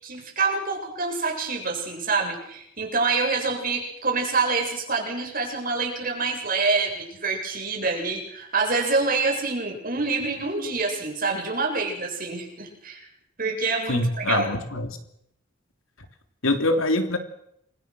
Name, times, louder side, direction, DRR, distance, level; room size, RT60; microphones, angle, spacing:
voice 1, 0.0-13.0 13.4-14.5, right 4 dB, 45° right, 1 dB, 7.8 m, -26 dB
voice 2, 13.9-15.0 16.4-17.2, left 2 dB, 80° left, 7 dB, 3.3 m, -24 dB
28.5 x 25.0 x 6.4 m, 0.74 s
head